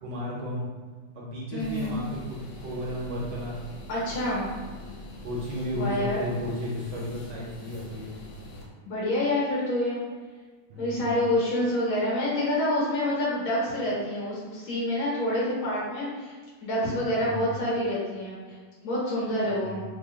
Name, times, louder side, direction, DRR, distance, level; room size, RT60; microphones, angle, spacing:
voice 1, 0.0-0.7 1.1-3.6 4.7-4.8 5.2-8.2 10.7-11.2 17.2-17.5 19.5-19.8, equal, 65° right, -4 dB, 1.2 m, -34 dB
voice 2, 1.5-2.0 3.9-4.5 5.7-6.2 8.8-10.0 10.8-18.6 18.8-19.8, left 1 dB, 85° left, -6 dB, 2.0 m, -27 dB
sound 1, 1.6-8.7, left 1 dB, 65° left, 1.2 m, -43 dB
3.9 x 2.2 x 3.5 m, 1.4 s
omnidirectional pair, 2.2 m